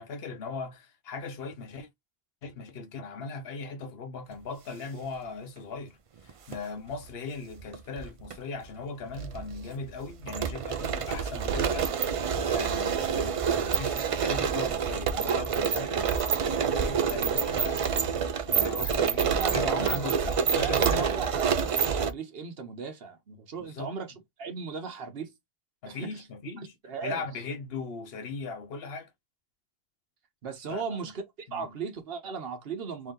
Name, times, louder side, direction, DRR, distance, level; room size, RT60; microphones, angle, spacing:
voice 1, 0.0-1.9 2.4-18.0 18.5-21.1 23.6-23.9 25.8-26.7 27.0-29.1 30.7-31.1 31.5-31.7, left 4 dB, 70° left, 1.0 m, -39 dB
sound 1, 6.3-6.6 7.6-8.4 8.6-8.7 9.2-22.1, right 7 dB, 55° right, 0.4 m, -27 dB
voice 2, 18.7-24.1 24.4-25.3 25.9-26.2 26.8-27.2 30.4-33.1, right 5 dB, 70° right, 1.2 m, -37 dB
3.4 x 2.8 x 3.6 m
omnidirectional pair, 1.0 m